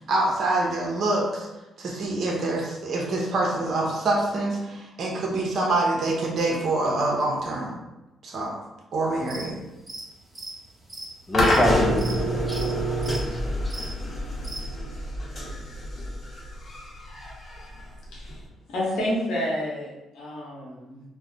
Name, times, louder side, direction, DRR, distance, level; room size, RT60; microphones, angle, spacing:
voice 1, 0.0-1.5 1.8-7.7 8.2-8.5 8.9-9.6, right 2 dB, 55° right, -1 dB, 0.6 m, -25 dB
sound 1, 9.1-9.5 9.8-14.7, right 2 dB, 15° right, 0.9 m, -38 dB
sound 2, 11.3-18.4, equal, 45° left, 0.8 m, -27 dB
voice 2, 11.3-12.8 13.1-13.8, equal, 15° left, 1 dB, 0.5 m, -27 dB
voice 3, 18.1-18.4 18.7-21.0, left 1 dB, 80° left, -5 dB, 0.8 m, -29 dB
2.3 x 2.0 x 3.8 m, 0.99 s
cardioid pair, 90°, 0 cm